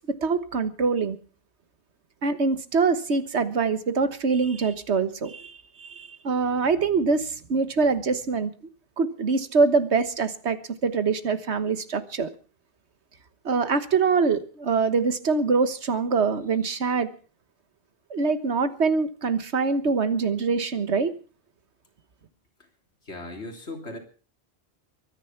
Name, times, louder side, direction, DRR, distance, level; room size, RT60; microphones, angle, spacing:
voice 1, 0.2-1.2 2.2-5.5 5.8-8.5 9.0-12.3 13.4-17.1 18.1-21.1, right 4 dB, 85° right, 1.6 m, -24 dB
voice 2, 23.1-24.0, left 2 dB, 85° left, 3.5 m, -37 dB
23.0 x 10.0 x 5.8 m
omnidirectional pair, 1.1 m